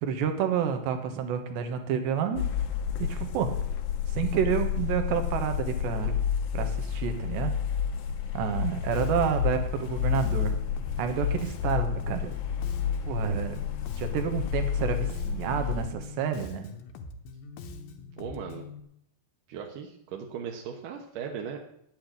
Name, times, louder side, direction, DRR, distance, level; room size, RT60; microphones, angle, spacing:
voice 1, 0.0-2.5 3.0-3.5 4.1-6.2 6.5-7.5 8.3-10.6 11.0-12.3 13.1-13.6 14.0-16.7, right 7 dB, 80° right, 6 dB, 3.6 m, -29 dB
sound 1, 2.4-15.9, left 8 dB, 65° left, 2.8 m, -30 dB
Bass guitar, 8.9-18.8, left 3 dB, 90° left, 3.5 m, -43 dB
voice 2, 18.2-18.7 19.5-21.6, right 7 dB, 65° right, 2 dB, 2.3 m, -38 dB
9.9 x 8.9 x 8.7 m, 0.73 s
omnidirectional pair, 4.9 m